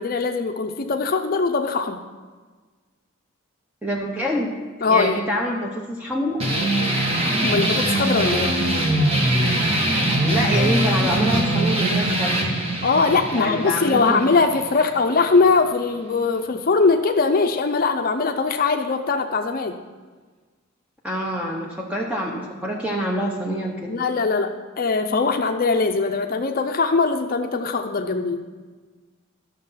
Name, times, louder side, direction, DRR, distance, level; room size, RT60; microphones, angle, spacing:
voice 1, 0.0-2.0 4.8-5.2 7.4-8.6 12.8-19.8 23.9-28.4, left 4 dB, 45° left, 5 dB, 0.5 m, -21 dB
voice 2, 3.8-4.5 4.8-6.4 10.2-12.4 13.3-14.2 21.0-24.0, equal, 5° right, -2 dB, 0.9 m, -26 dB
sound 1, 6.4-15.4, right 1 dB, 30° right, 1.5 m, -22 dB
12.0 x 6.7 x 5.6 m, 1.4 s
head